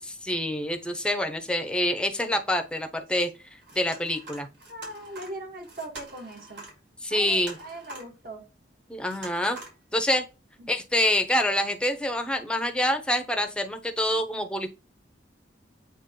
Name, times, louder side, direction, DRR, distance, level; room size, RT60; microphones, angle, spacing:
voice 1, 0.0-3.3 3.7-4.5 7.0-7.6 8.9-9.6 9.9-10.2 10.7-14.7, left 1 dB, 5° left, 6 dB, 0.7 m, -26 dB
sound 1, 3.6-6.8 7.1-8.2 9.0-9.8 10.2-10.3 11.4-11.7 12.8-12.9 13.4-13.5, right 2 dB, 75° right, 3.9 m, -45 dB
voice 2, 4.7-6.7 7.1-8.4 10.6-10.7, right 1 dB, 50° right, 2 dB, 1.9 m, -40 dB
8.2 x 3.1 x 3.8 m, 0.29 s
head